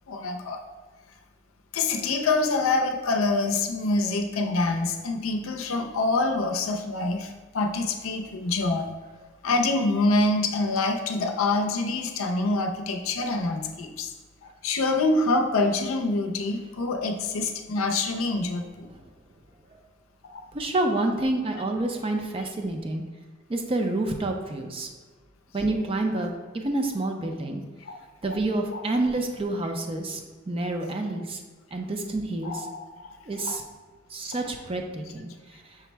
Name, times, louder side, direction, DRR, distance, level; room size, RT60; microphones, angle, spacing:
voice 1, 0.1-0.6 1.7-8.9 9.4-14.1 14.6-18.9 20.3-20.4 27.9-28.0 28.7-28.8 32.4-32.9 33.4-33.6 34.4-34.5, left 2 dB, 85° left, 4 dB, 0.5 m, -26 dB
voice 2, 20.5-23.0 23.5-24.9 25.5-27.6 28.2-31.4 31.7-32.7 33.3-33.6 34.1-35.6, right 2 dB, 25° right, 3 dB, 0.4 m, -28 dB
5.7 x 2.1 x 4.4 m, 1.4 s
head